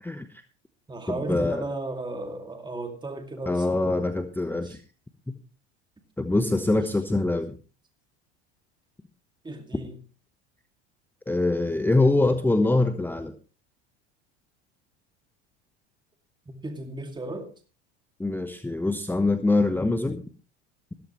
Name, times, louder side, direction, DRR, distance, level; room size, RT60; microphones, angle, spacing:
voice 1, 0.0-0.4 1.1-1.6 3.4-4.8 5.3-5.4 6.2-7.6 11.3-13.3 18.2-20.2, left 2 dB, 5° left, 9 dB, 1.0 m, -24 dB
voice 2, 0.9-4.8 6.6-6.7 9.4-10.0 16.5-17.5, right 2 dB, 15° right, 5 dB, 2.3 m, -36 dB
15.5 x 13.0 x 3.1 m, 0.35 s
hypercardioid pair, 85°, 34 cm